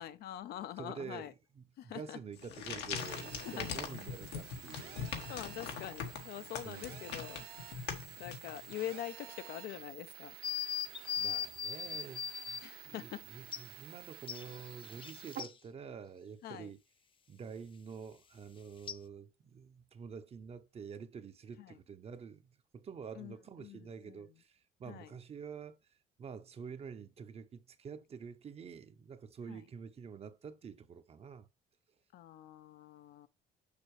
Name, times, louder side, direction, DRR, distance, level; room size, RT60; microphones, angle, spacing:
voice 1, 0.0-1.3 1.8-2.2 3.1-3.8 4.7-7.5 8.2-10.4 12.6-13.3 16.4-16.7 21.6-21.8 23.1-24.2 24.9-25.1 29.5-29.6 32.1-33.3, left 12 dB, 70° left, 0.6 m, -45 dB
voice 2, 0.8-5.0 6.6-7.1 11.2-16.8 17.3-22.5 22.7-25.8 26.2-31.5, right 6 dB, 35° right, 0.8 m, -48 dB
sound 1, 2.3-8.9, left 7 dB, 90° left, 1.4 m, -42 dB
Telephone, 3.0-15.4, right 11 dB, 70° right, 1.2 m, -51 dB
sound 2, 10.4-12.6 13.5-13.6 14.3-15.5 18.9-19.0, left 8 dB, 30° left, 0.4 m, -38 dB
6.7 x 5.9 x 3.2 m
cardioid pair, 110°, 17 cm